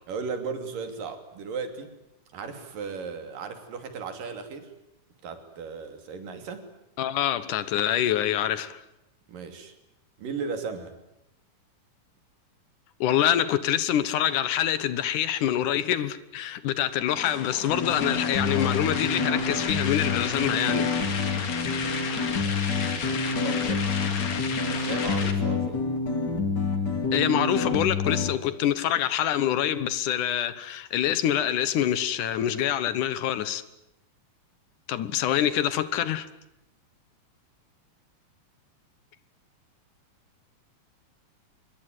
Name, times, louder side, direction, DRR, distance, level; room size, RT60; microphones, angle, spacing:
voice 1, 0.1-1.9 2.3-4.7 5.2-6.7 9.3-9.7 10.2-10.9 22.4-24.0 24.7-25.8, right 5 dB, 90° right, 4.5 m, -36 dB
voice 2, 7.0-8.8 13.0-20.9 27.1-33.6 34.9-36.3, left 11 dB, 75° left, 2.6 m, -26 dB
sound 1, 17.2-25.3, left 5 dB, 55° left, 3.7 m, -33 dB
sound 2, 17.7-28.3, left 4 dB, 35° left, 2.8 m, -28 dB
24.5 x 21.0 x 9.5 m
omnidirectional pair, 3.8 m